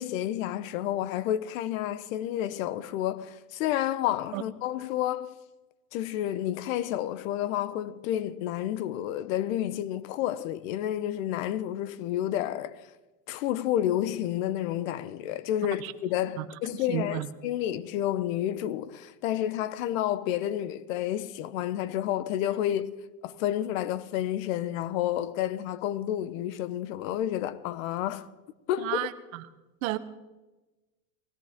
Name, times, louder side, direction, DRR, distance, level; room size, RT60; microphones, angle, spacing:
voice 1, 0.0-5.3 5.9-12.9 13.3-22.9 23.2-28.3 28.7-29.0, left 12 dB, 65° left, 1.0 m, -30 dB
voice 2, 15.6-15.9 16.4-16.5 16.7-17.3 28.8-29.4 29.8-30.0, right 15 dB, 65° right, 1.1 m, -32 dB
20.0 x 16.5 x 3.7 m
supercardioid pair, 120°, 43 cm